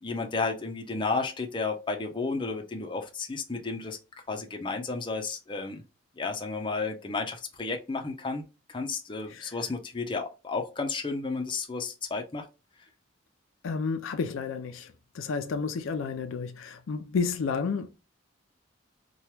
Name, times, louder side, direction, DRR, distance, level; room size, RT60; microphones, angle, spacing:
voice 1, 0.0-4.0 4.3-5.8 6.2-8.4 8.7-12.5, left 4 dB, 25° left, 0.5 m, -32 dB
voice 2, 13.6-17.9, left 5 dB, 80° left, 0.4 m, -31 dB
2.9 x 2.3 x 3.2 m
head